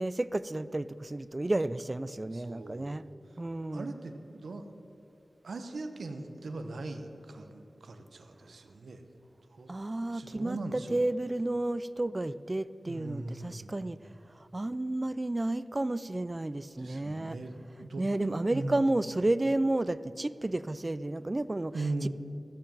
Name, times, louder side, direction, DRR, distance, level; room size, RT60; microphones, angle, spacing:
voice 1, 0.0-3.0 3.4-3.9 9.7-14.0 14.4-17.4 18.0-22.1, right 2 dB, 30° right, 17 dB, 0.4 m, -31 dB
voice 2, 2.3-3.0 3.7-4.7 5.4-9.0 9.5-9.7 10.1-10.9 12.9-13.8 16.8-18.9 21.7-22.1, right 2 dB, 90° right, 7 dB, 0.9 m, -39 dB
14.0 x 7.1 x 7.5 m, 2.9 s
wide cardioid pair, 70°, 0 cm